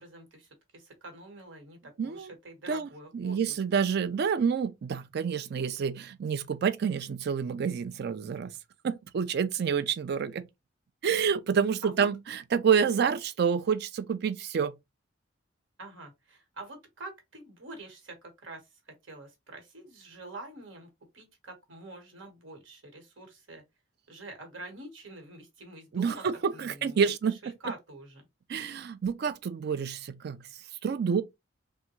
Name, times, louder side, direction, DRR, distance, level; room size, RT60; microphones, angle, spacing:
voice 1, 0.0-3.6 11.8-12.1 15.8-20.9 21.1-23.6 24.1-26.2 26.5-27.0 27.3-28.2, right 2 dB, 80° right, 1.2 m, -46 dB
voice 2, 2.0-2.3 2.7-8.5 8.8-10.5 11.0-14.7 25.9-27.5 28.5-30.4 30.8-31.2, right 6 dB, 55° right, 0.4 m, -28 dB
3.4 x 2.1 x 3.0 m
head